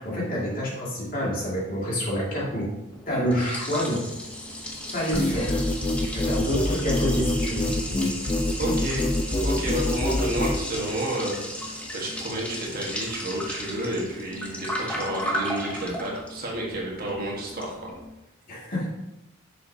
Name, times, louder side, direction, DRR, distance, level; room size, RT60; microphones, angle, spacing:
voice 1, 0.0-2.7 3.1-4.0 4.9-5.6 6.1-7.7 18.5-18.9, equal, 40° left, -5 dB, 2.4 m, -27 dB
Liquid, 2.9-18.1, left 1 dB, 5° left, 0.9 m, -35 dB
sound 1, 5.1-10.6, left 1 dB, 20° left, 0.5 m, -25 dB
voice 2, 8.6-9.1 9.4-17.9, right 1 dB, 45° right, -3 dB, 1.6 m, -30 dB
7.2 x 6.3 x 2.8 m, 0.94 s
head